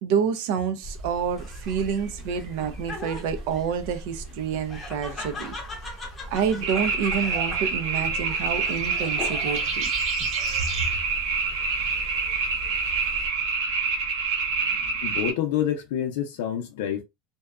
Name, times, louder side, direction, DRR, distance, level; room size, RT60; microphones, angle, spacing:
voice 1, 0.0-5.5 6.3-9.9, right 7 dB, 60° right, 0.5 m, -28 dB
sound 1, 0.8-13.3, right 2 dB, 45° right, 1.0 m, -39 dB
Laughter, 1.4-9.8 10.2-10.9, left 2 dB, 15° left, 0.8 m, -40 dB
sound 2, 6.6-15.3, right 4 dB, 90° right, 0.9 m, -27 dB
voice 2, 15.0-17.0, left 10 dB, 75° left, 0.5 m, -27 dB
2.6 x 2.2 x 2.3 m
supercardioid pair, 165°, 0 cm